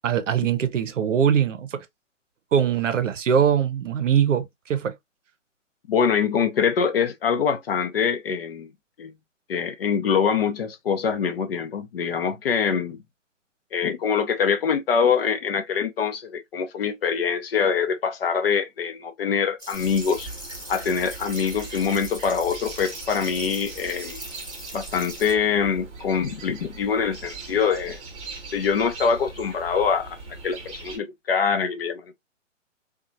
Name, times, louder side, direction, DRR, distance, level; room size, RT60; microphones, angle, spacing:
voice 1, 0.0-1.9 2.5-5.0, right 8 dB, 70° right, 0.7 m, -22 dB
voice 2, 5.9-8.7 9.0-9.1 9.5-13.0 13.7-20.3 20.7-24.2 24.7-28.0 28.5-30.2 30.4-32.1, left 6 dB, 50° left, 0.6 m, -24 dB
sound 1, 19.6-25.3, right 1 dB, 5° right, 0.4 m, -40 dB
sound 2, 19.7-31.0, right 3 dB, 25° right, 0.9 m, -40 dB
2.7 x 2.3 x 2.5 m
figure-of-eight pair, 135°, 38 cm